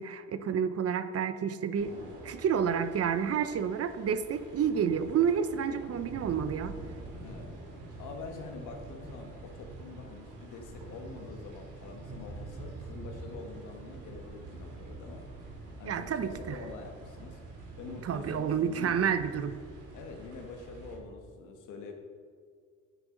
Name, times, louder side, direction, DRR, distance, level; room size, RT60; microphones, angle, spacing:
voice 1, 0.0-1.9 2.2-6.8 15.9-16.6 18.0-19.6, right 7 dB, 50° right, 11 dB, 0.7 m, -29 dB
sound 1, 1.7-21.0, right 2 dB, 80° right, 2.8 m, -46 dB
voice 2, 1.8-2.4 7.2-7.5 8.0-15.3 15.8-19.1 19.9-21.9, left 4 dB, 85° left, 3 dB, 1.6 m, -45 dB
11.0 x 9.5 x 4.0 m, 2.1 s
cardioid pair, 90°, 30 cm